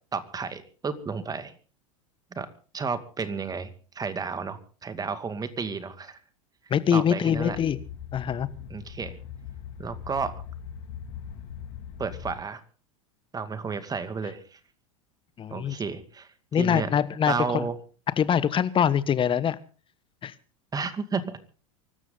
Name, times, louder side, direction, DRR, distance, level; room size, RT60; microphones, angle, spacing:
voice 1, 0.1-1.5 2.3-2.5 2.7-6.2 6.9-7.6 8.7-9.2 9.8-10.3 12.0-12.6 13.3-14.6 15.5-16.9 17.3-17.8 20.7-21.4, right 5 dB, 20° right, 11 dB, 2.3 m, -32 dB
voice 2, 6.7-7.8 8.1-8.5 15.4-15.7 16.5-17.7 18.2-19.6 20.2-20.3, left 8 dB, 30° left, 16 dB, 1.3 m, -24 dB
sound 1, 7.3-12.3, left 8 dB, 60° left, 2.9 m, -41 dB
24.5 x 13.0 x 4.0 m, 0.38 s
hypercardioid pair, 90°, 18 cm